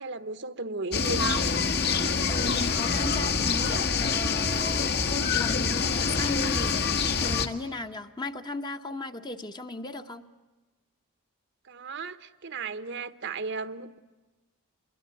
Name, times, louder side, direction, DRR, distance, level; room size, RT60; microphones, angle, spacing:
voice 1, 0.0-1.5 11.6-14.0, right 4 dB, 55° right, 12 dB, 1.1 m, -35 dB
sound 1, 0.9-7.5, left 5 dB, 45° left, 1.5 m, -26 dB
voice 2, 2.3-10.3, left 2 dB, 20° left, 7 dB, 1.1 m, -36 dB
26.5 x 22.5 x 9.1 m, 1.2 s
head